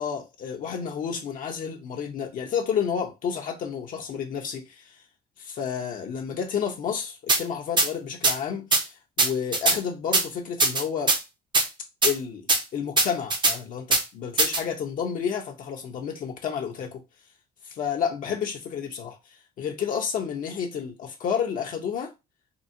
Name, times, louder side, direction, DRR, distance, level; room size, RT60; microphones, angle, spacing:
voice 1, 0.0-5.0 5.4-11.1 12.0-17.0 17.6-19.2 19.6-22.1, left 7 dB, 55° left, 0.6 m, -30 dB
sound 1, 7.3-7.4 7.8-7.9 8.2-8.3 8.7-8.8 9.2-9.8 10.1-10.2 10.6-11.2 11.5-11.7 12.0-12.1 12.5-12.6 13.0-13.5 13.9-14.0 14.4-14.6, right 3 dB, 25° right, 0.6 m, -20 dB
3.7 x 2.1 x 2.5 m
cardioid pair, 110°, 17 cm